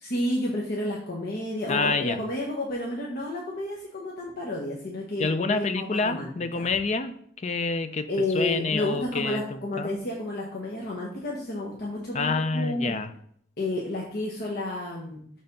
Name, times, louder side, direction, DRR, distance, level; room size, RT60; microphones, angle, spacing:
voice 1, 0.0-6.3 6.5-6.7 8.1-13.0 13.6-15.2, left 1 dB, 55° left, -2 dB, 1.1 m, -31 dB
voice 2, 1.7-2.2 5.2-8.1 8.3-10.0 12.1-13.1, left 4 dB, 35° left, 10 dB, 0.5 m, -28 dB
6.6 x 3.4 x 5.4 m, 0.64 s
head